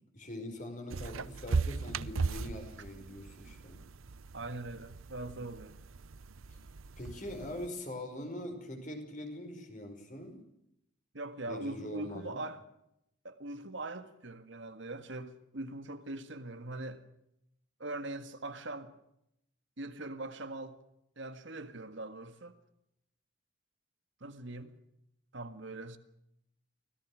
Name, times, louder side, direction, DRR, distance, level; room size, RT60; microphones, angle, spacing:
voice 1, 0.1-3.8 6.5-6.6 6.9-10.4 11.5-12.4, left 1 dB, 40° left, 5.1 m, -43 dB
sound 1, 0.9-7.7, right 4 dB, 90° right, 0.7 m, -38 dB
voice 2, 4.3-5.8 11.1-12.6 13.2-17.0 17.8-18.9 19.8-20.8 21.2-22.5 24.2-24.7 25.3-26.0, right 2 dB, 65° right, 1.7 m, -41 dB
24.5 x 17.5 x 6.3 m
head